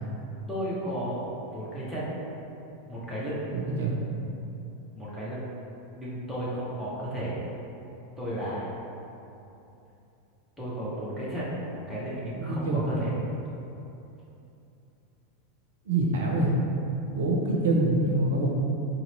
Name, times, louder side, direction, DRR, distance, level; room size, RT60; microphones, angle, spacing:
voice 1, 0.5-2.1 2.9-3.5 4.9-5.5 5.9-7.4 8.2-8.7 10.6-13.1, equal, 5° left, -10 dB, 0.9 m, -33 dB
voice 2, 3.5-3.9 12.3-12.8 15.9-16.5 17.1-18.5, right 2 dB, 65° right, -1 dB, 0.6 m, -25 dB
2.9 x 2.9 x 4.0 m, 2.8 s
figure-of-eight pair, 85°, 0 cm